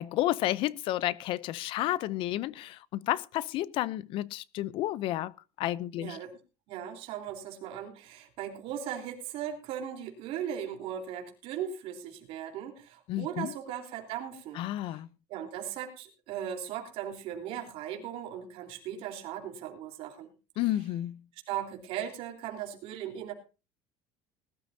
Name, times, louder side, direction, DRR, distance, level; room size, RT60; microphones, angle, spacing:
voice 1, 0.0-6.2 13.1-13.5 14.6-15.1 20.6-21.2, left 14 dB, 50° left, 0.6 m, -31 dB
voice 2, 5.9-6.4 6.7-14.6 15.3-20.3 21.5-23.3, right 9 dB, 60° right, 3.8 m, -38 dB
20.0 x 12.5 x 2.7 m
cardioid pair, 165°, 11 cm